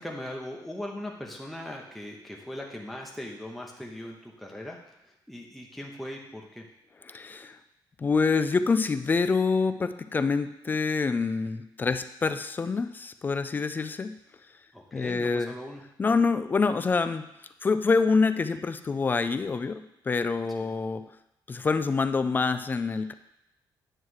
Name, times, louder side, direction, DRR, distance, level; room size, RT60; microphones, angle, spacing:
voice 1, 0.0-6.6 14.7-15.8 20.6-20.7, left 1 dB, ahead, 0 dB, 0.7 m, -40 dB
voice 2, 7.0-7.6 8.0-14.1 14.9-15.5 16.0-17.2 17.6-21.0 21.5-23.1, left 4 dB, 25° left, 11 dB, 0.3 m, -26 dB
9.1 x 3.1 x 6.3 m, 0.84 s
cardioid pair, 145°, 8 cm